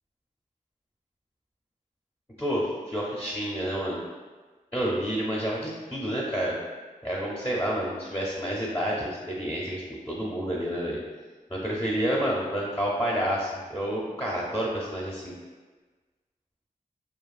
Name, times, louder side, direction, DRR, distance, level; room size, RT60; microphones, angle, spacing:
voice 1, 2.4-4.0 4.7-6.6 7.0-11.0 11.5-15.3, equal, 15° left, -5 dB, 0.5 m, -29 dB
2.6 x 2.3 x 2.3 m, 1.3 s
cardioid pair, 50°, 14 cm